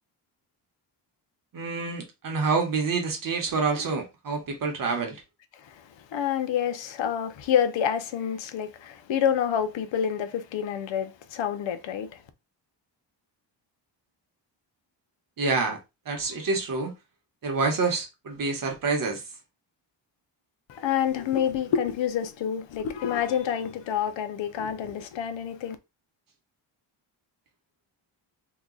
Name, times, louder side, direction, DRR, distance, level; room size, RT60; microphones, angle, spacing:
voice 1, 1.5-5.2 15.4-15.8 16.1-16.9 17.4-19.2, right 4 dB, 45° right, 1.0 m, -27 dB
voice 2, 5.5-12.2 20.7-25.8, left 9 dB, 80° left, 0.7 m, -28 dB
2.9 x 2.3 x 3.7 m
wide cardioid pair, 140°, 45 cm